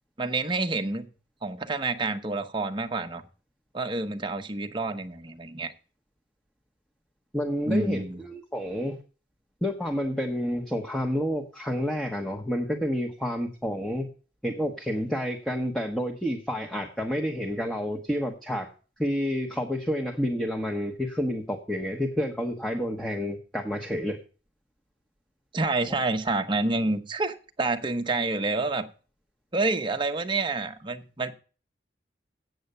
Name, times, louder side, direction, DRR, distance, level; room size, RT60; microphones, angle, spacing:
voice 1, 0.2-1.1 1.4-3.2 3.7-5.7 7.7-8.2 25.5-28.9 29.5-31.3, right 3 dB, 25° right, 0.8 m, -28 dB
voice 2, 7.3-9.0 9.6-14.1 14.4-18.7 19.0-24.2, equal, 5° left, 1.0 m, -29 dB
8.1 x 7.9 x 6.6 m
head